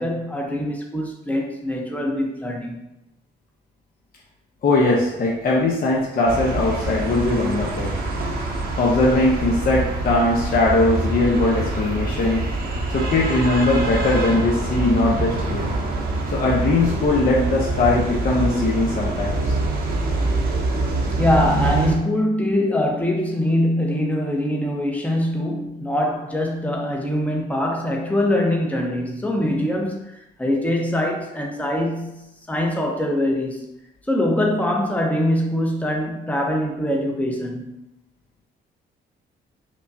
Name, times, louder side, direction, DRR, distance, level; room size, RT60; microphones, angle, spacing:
voice 1, 0.0-2.8 21.2-33.7 34.1-37.7, left 1 dB, 5° left, 0 dB, 0.7 m, -23 dB
voice 2, 4.6-7.9 8.8-12.4 12.9-15.7 16.3-19.6, left 2 dB, 50° left, -4 dB, 0.7 m, -20 dB
sound 1, 6.3-22.0, right 2 dB, 50° right, 0.8 m, -25 dB
5.1 x 2.2 x 2.6 m, 0.88 s
cardioid pair, 90°, 20 cm